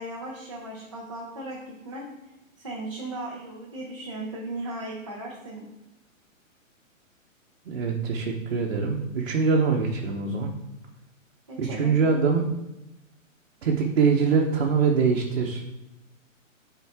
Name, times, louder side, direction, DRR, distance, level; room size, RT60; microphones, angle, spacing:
voice 1, 0.0-2.3 2.6-5.7 11.5-12.0, right 1 dB, 25° right, -3 dB, 0.5 m, -37 dB
voice 2, 7.7-10.5 11.6-12.5 13.6-15.6, right 5 dB, 50° right, -1 dB, 0.9 m, -23 dB
8.7 x 3.8 x 3.6 m, 0.95 s
hypercardioid pair, 175°, 41 cm